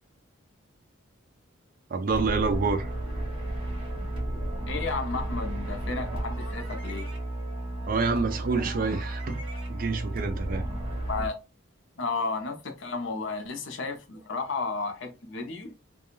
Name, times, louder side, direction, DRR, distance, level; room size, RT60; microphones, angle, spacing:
voice 1, 1.9-2.9 7.9-9.4 9.7-10.6, right 4 dB, 40° right, 0.3 m, -27 dB
sound 1, 2.1-11.3, right 1 dB, 25° right, 0.8 m, -33 dB
voice 2, 4.7-7.1 11.1-11.4 12.0-15.8, left 4 dB, 65° left, 0.6 m, -33 dB
2.4 x 2.2 x 2.9 m
head